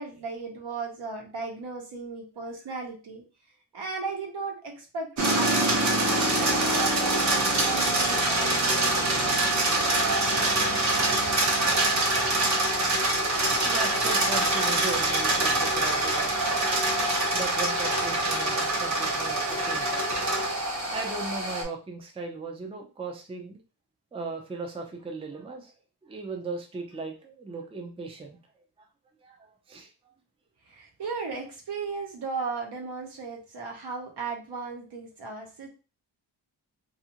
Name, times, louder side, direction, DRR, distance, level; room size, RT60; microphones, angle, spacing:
voice 1, 0.0-3.2 3.7-8.7 11.1-11.2 30.7-35.7, right 4 dB, 65° right, 1 dB, 1.0 m, -36 dB
sound 1, 5.2-21.6, right 2 dB, 40° right, 0.8 m, -25 dB
voice 2, 13.6-16.7 17.3-20.0 20.9-23.6 24.1-25.7 26.0-28.4 29.2-29.9, right 4 dB, 15° right, 2 dB, 0.4 m, -37 dB
2.5 x 2.5 x 2.8 m, 0.33 s
wide cardioid pair, 120°, 42 cm